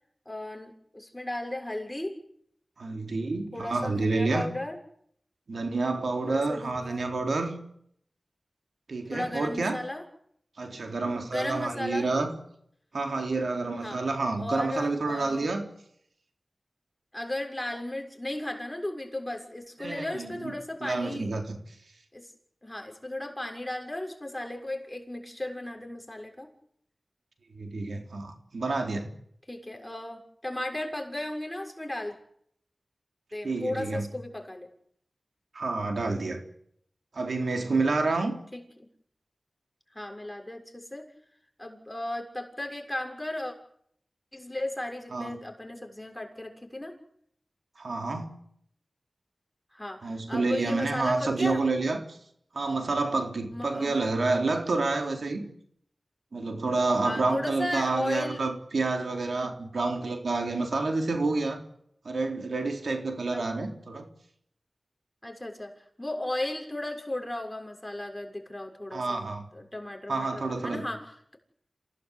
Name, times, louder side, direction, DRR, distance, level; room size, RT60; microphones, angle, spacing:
voice 1, 0.3-2.1 3.5-4.8 6.2-7.1 9.1-10.0 11.3-12.1 13.8-14.0 14.4-15.5 17.1-21.3 22.1-22.3 22.6-26.5 29.5-32.2 33.3-34.7 38.5-38.6 39.9-41.1 41.6-43.5 44.3-47.0 49.7-51.7 53.5-54.0 57.0-58.5 63.3-63.4 65.2-71.4, left 1 dB, 15° left, 3 dB, 6.7 m, -35 dB
voice 2, 2.8-4.5 5.5-7.6 8.9-9.8 10.6-12.3 12.9-15.6 19.8-20.5 20.8-21.6 27.5-29.1 33.4-34.1 35.5-36.4 37.1-38.4 45.1-45.4 47.8-48.3 50.0-52.2 52.5-55.4 56.3-61.6 62.0-64.1 68.9-69.4 70.1-70.8, right 3 dB, 80° right, 4 dB, 3.9 m, -29 dB
27.5 x 18.0 x 8.4 m, 0.69 s
cardioid pair, 50°, 0 cm